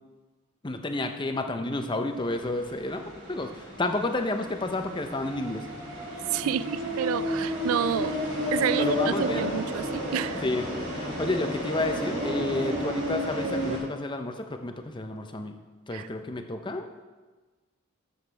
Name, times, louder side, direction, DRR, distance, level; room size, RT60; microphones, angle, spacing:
voice 1, 0.6-5.6 8.8-9.5 10.4-10.7 10.9-15.5 15.9-16.9, left 2 dB, 20° left, 6 dB, 0.6 m, -30 dB
sound 1, 2.2-13.8, equal, 55° right, 3.5 m, -32 dB
voice 2, 6.3-8.2 8.5-10.4 15.9-16.1, right 9 dB, 75° right, 15 dB, 0.3 m, -29 dB
13.0 x 7.0 x 3.4 m, 1.3 s
head